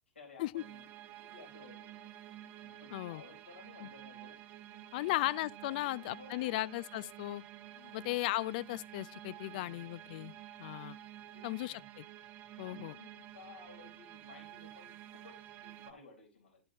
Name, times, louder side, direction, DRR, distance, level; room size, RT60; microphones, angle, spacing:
voice 1, 0.1-0.8 1.2-1.9 2.6-5.2 5.6-6.6 7.7-8.1 9.5-10.4 11.3-11.9 12.5-16.6, left 4 dB, 80° left, 4.0 m, -57 dB
sound 1, 0.6-15.9, right 13 dB, 40° right, 0.9 m, -51 dB
voice 2, 2.9-3.2 4.9-7.4 7.9-10.3 10.6-11.0 11.4-12.1 12.6-12.9, left 18 dB, 50° left, 0.3 m, -36 dB
10.5 x 7.6 x 2.8 m
figure-of-eight pair, 100°, 6 cm